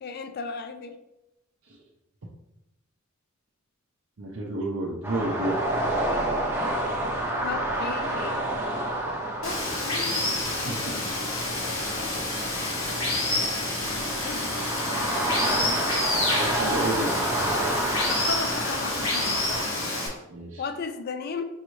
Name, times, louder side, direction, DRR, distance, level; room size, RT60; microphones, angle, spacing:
voice 1, 0.0-0.9 7.4-8.5 9.4-10.4 14.2-14.5 18.1-19.9 20.6-21.5, left 4 dB, 45° left, 8 dB, 0.3 m, -35 dB
voice 2, 4.2-5.6 10.6-11.0 16.3-17.3 20.3-20.6, right 1 dB, 65° right, -4 dB, 0.6 m, -31 dB
sound 1, 5.0-19.7, right 1 dB, 10° right, 0.6 m, -30 dB
Water, 9.4-20.1, left 2 dB, 80° left, 1.3 m, -28 dB
5.4 x 2.6 x 3.1 m, 0.90 s
head